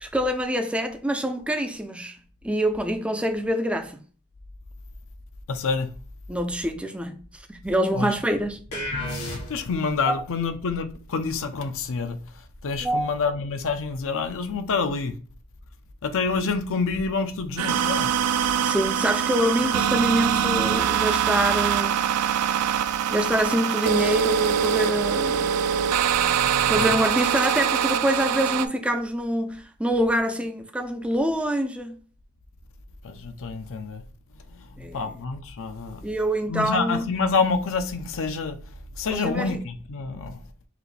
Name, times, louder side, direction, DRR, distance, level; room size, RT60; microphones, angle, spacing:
voice 1, 0.0-2.2 2.4-4.0 6.3-8.6 10.1-10.2 12.8-13.1 18.6-22.0 23.1-25.6 26.7-32.0 34.8-35.1 36.0-37.0 39.1-39.6, equal, 5° right, 0.4 m, -25 dB
voice 2, 5.5-5.9 7.9-8.1 9.5-12.2 12.6-15.1 16.0-18.8 25.7-27.0 33.0-34.0 34.3-36.0 36.5-38.6 39.0-40.4, left 4 dB, 60° left, 0.6 m, -28 dB
sound 1, 8.7-9.9, left 1 dB, 80° left, 1.9 m, -31 dB
sound 2, 17.6-28.7, right 8 dB, 90° right, 0.4 m, -23 dB
4.9 x 2.5 x 3.2 m
head